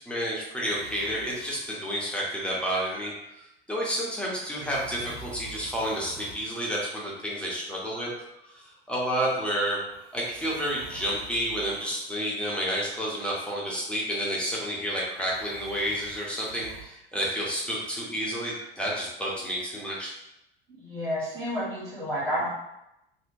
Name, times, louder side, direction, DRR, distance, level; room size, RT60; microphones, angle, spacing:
voice 1, 0.0-3.1 3.7-8.1 8.5-9.8 10.1-20.1, equal, 5° left, -5 dB, 0.8 m, -30 dB
sound 1, 0.7-1.9 2.6-3.5 4.6-6.5 7.8-8.7 9.9-11.9 13.1-13.9 15.1-16.9 18.3-18.7, right 3 dB, 50° right, 1.2 m, -48 dB
voice 2, 20.8-22.5, equal, 85° right, -9 dB, 1.3 m, -30 dB
2.7 x 2.1 x 2.7 m, 0.85 s
figure-of-eight pair, 65°, 29 cm